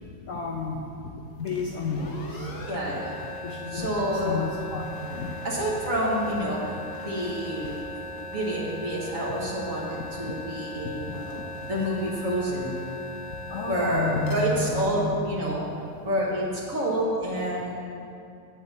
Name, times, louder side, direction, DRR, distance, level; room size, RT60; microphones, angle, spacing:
voice 1, 0.3-0.8 1.4-2.5 3.4-5.4 10.2-10.3 10.8-10.9 11.3-11.4 13.5-15.3, left 3 dB, 85° left, -1 dB, 0.6 m, -31 dB
sound 1, 1.4-16.0, left 1 dB, 50° left, 1.1 m, -39 dB
voice 2, 2.7-3.3 3.7-4.4 5.0-5.1 5.4-7.8 8.3-11.4 11.7-12.8 13.7-15.6 16.0-17.7, equal, 45° right, -4 dB, 1.7 m, -28 dB
8.5 x 8.4 x 4.2 m, 2.5 s
omnidirectional pair, 2.2 m